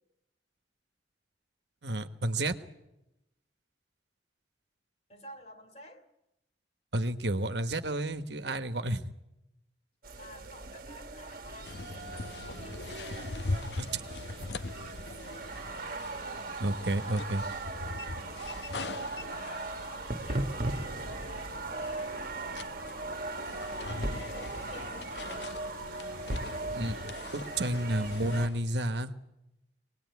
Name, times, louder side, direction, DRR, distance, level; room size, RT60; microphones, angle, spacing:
voice 1, 1.8-2.6 6.9-9.1 13.8-14.0 16.6-17.4 26.7-27.0 27.3-29.1, right 1 dB, 75° right, 9 dB, 1.3 m, -31 dB
voice 2, 5.1-6.0 10.2-12.9 15.2-16.0 16.3-18.8 19.3-22.2 23.4-25.0, equal, 35° left, 6 dB, 2.6 m, -52 dB
sound 1, 10.0-28.5, right 2 dB, 50° right, 1.5 m, -38 dB
sound 2, 11.6-28.6, left 3 dB, 75° left, 0.8 m, -42 dB
24.5 x 19.5 x 9.4 m, 0.91 s
head